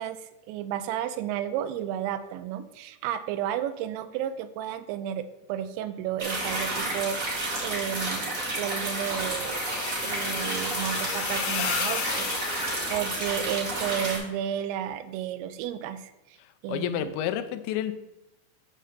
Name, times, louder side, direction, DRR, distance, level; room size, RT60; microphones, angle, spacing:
voice 1, 0.0-9.6 10.0-12.3 12.6-16.4 16.6-17.1, right 10 dB, 85° right, 11 dB, 2.8 m, -33 dB
sound 1, 6.2-14.2, right 2 dB, 65° right, 0.8 m, -31 dB
sound 2, 8.4-13.3, left 7 dB, 75° left, 2.3 m, -34 dB
voice 2, 16.7-17.9, left 11 dB, 90° left, 9 dB, 2.9 m, -29 dB
8.5 x 3.3 x 6.5 m, 0.92 s
omnidirectional pair, 5.2 m